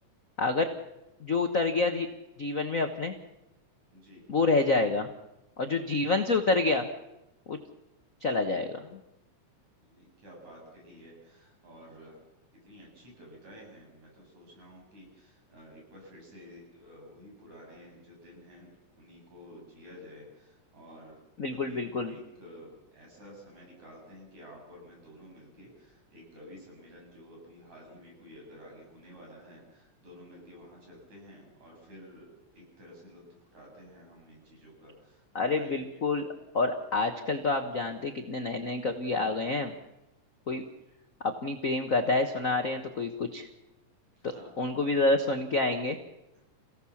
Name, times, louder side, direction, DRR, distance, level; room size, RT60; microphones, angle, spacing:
voice 1, 0.4-0.7 1.2-2.1 2.4-3.1 4.3-5.1 5.6-6.9 7.5-7.6 8.2-8.9 21.4-22.1 35.3-36.3 36.5-39.7 40.5-40.6 41.2-43.5 44.2-46.0, left 3 dB, 75° left, 6 dB, 0.7 m, -28 dB
voice 2, 3.9-4.2 9.8-12.2 12.5-21.2 21.5-21.8 22.1-35.8 44.2-45.0, equal, 65° right, -1 dB, 8.9 m, -51 dB
28.5 x 16.5 x 7.2 m, 0.94 s
omnidirectional pair, 3.4 m